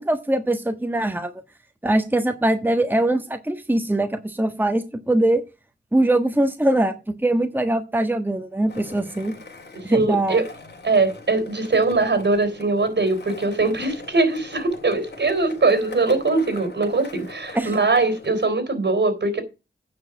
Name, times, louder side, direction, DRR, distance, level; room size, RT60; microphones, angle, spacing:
voice 1, 0.0-1.3 1.8-5.4 5.9-9.3 9.8-10.4 17.5-17.7, right 1 dB, 10° right, 1.4 m, -22 dB
Skateboard, 8.7-18.5, left 3 dB, 60° left, 3.8 m, -41 dB
voice 2, 9.9-10.4 10.8-19.4, right 3 dB, 65° right, 3.6 m, -21 dB
9.4 x 6.5 x 5.9 m
wide cardioid pair, 65°, 19 cm